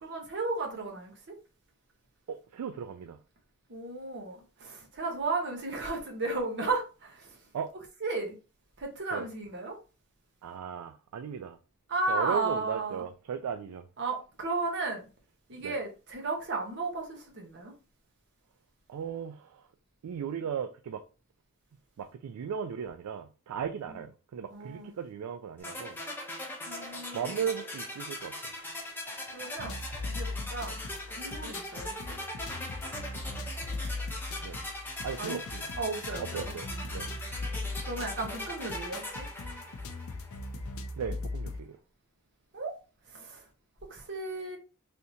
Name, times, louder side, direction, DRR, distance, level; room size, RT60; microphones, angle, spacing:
voice 1, 0.0-1.3 3.7-7.4 8.0-8.4 8.8-9.8 11.9-13.0 14.0-15.1 15.5-17.7 24.5-24.9 26.7-27.3 29.3-30.8 31.2-32.1 35.2-35.4 35.8-36.8 37.8-39.3 42.5-42.7 43.1-43.4 43.9-44.6, right 3 dB, 50° right, 0.9 m, -34 dB
voice 2, 2.3-3.2 7.5-7.7 9.1-9.3 10.4-11.6 12.1-13.8 15.6-15.8 18.9-19.6 20.0-21.0 22.0-26.0 27.1-28.4 34.4-34.6 35.0-35.6 36.2-37.1 41.0-41.8, right 7 dB, 85° right, 0.3 m, -36 dB
sound 1, 25.6-40.5, left 1 dB, 10° left, 0.7 m, -40 dB
sound 2, 29.6-41.6, left 2 dB, 65° left, 0.5 m, -39 dB
3.4 x 2.7 x 2.7 m
head